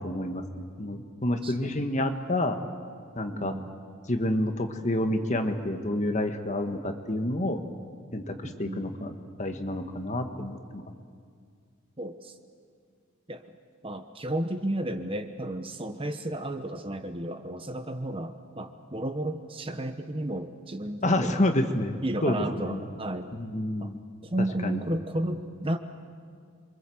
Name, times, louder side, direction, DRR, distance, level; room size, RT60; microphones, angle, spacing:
voice 1, 0.0-2.6 3.1-3.5 4.1-7.6 8.1-10.8 21.0-22.8 23.3-24.0 24.6-24.8, left 1 dB, 30° left, 6 dB, 1.5 m, -29 dB
voice 2, 1.4-1.9 3.3-3.7 8.4-8.8 12.0-12.4 13.3-13.4 13.8-21.4 22.0-23.3 23.8-23.9 24.2-25.8, right 1 dB, 25° right, 8 dB, 1.0 m, -33 dB
27.0 x 24.0 x 7.9 m, 2.2 s
head